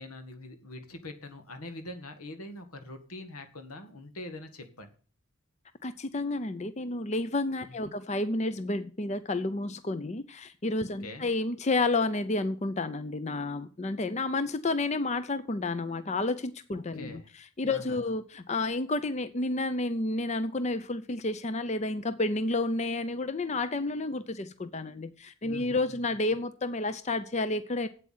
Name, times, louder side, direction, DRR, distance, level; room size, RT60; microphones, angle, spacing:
voice 1, 0.0-4.9 7.6-7.9 10.8-11.3 16.7-17.3 17.7-18.0 25.5-26.0, left 2 dB, 85° left, 7 dB, 1.8 m, -44 dB
voice 2, 5.8-17.2 17.6-27.9, left 2 dB, 30° left, 12 dB, 0.5 m, -30 dB
8.4 x 8.2 x 7.3 m, 0.41 s
head